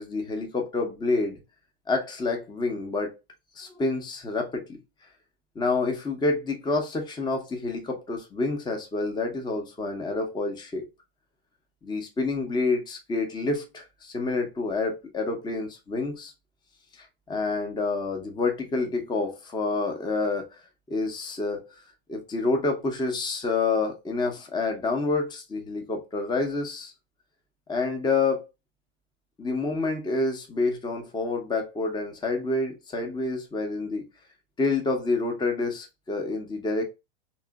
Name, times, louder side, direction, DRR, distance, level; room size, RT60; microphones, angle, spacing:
voice 1, 0.0-1.4 1.9-3.2 3.6-4.8 5.5-10.8 11.8-16.3 17.3-20.5 20.9-21.7 22.1-26.9 27.7-28.5 29.4-34.1 34.6-36.8, left 3 dB, 15° left, 0.9 m, -28 dB
3.1 x 3.0 x 2.3 m
hypercardioid pair, 115°, 29 cm